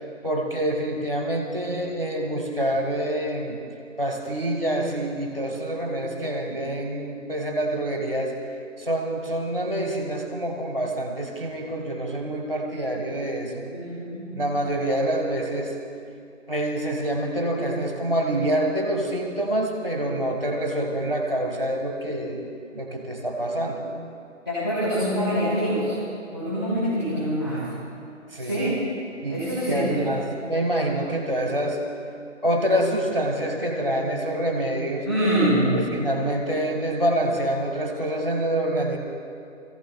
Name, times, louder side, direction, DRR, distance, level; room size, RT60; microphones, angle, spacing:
voice 1, 0.2-3.6 4.0-8.3 8.8-13.6 14.3-15.7 16.5-22.4 22.7-23.8 28.3-28.7 29.2-31.8 32.4-35.1 35.7-39.0, right 1 dB, 25° right, 0 dB, 1.0 m, -26 dB
voice 2, 13.7-14.3 24.4-25.9 26.3-27.6 28.3-28.7 29.3-30.2 35.0-35.8, equal, 20° left, -11 dB, 3.2 m, -25 dB
25.5 x 15.0 x 2.3 m, 2.6 s
figure-of-eight pair, 180°, 39 cm